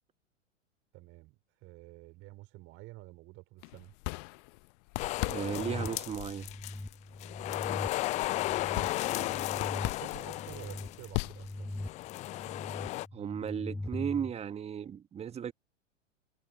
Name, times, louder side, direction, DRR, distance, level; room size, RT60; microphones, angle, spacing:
voice 1, 0.9-4.0 8.3-11.7, right 20 dB, 35° right, 4.3 m, -51 dB
sound 1, 3.6-12.0, left 33 dB, 35° left, 1.0 m, -41 dB
sound 2, 5.0-6.9 7.2-11.1 11.8-13.1, left 17 dB, 20° left, 0.5 m, -35 dB
sound 3, 5.2-14.3, left 1 dB, 5° left, 2.0 m, -42 dB
voice 2, 5.2-6.5 13.1-15.5, right 8 dB, 15° right, 1.5 m, -35 dB
figure-of-eight pair, 100°, 37 cm